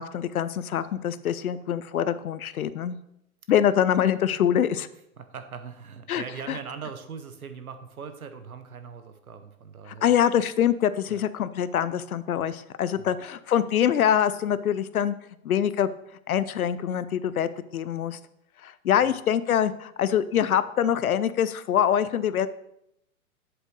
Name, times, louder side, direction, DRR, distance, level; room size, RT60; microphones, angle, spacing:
voice 1, 0.0-3.0 3.5-4.9 6.1-6.6 9.9-15.1 15.4-15.9 16.3-18.2 18.6-22.5, left 9 dB, 80° left, 15 dB, 0.6 m, -24 dB
voice 2, 5.2-10.1 11.1-11.3 13.0-13.1, right 6 dB, 80° right, 9 dB, 0.9 m, -40 dB
7.9 x 7.6 x 3.2 m, 0.79 s
figure-of-eight pair, 115°, 43 cm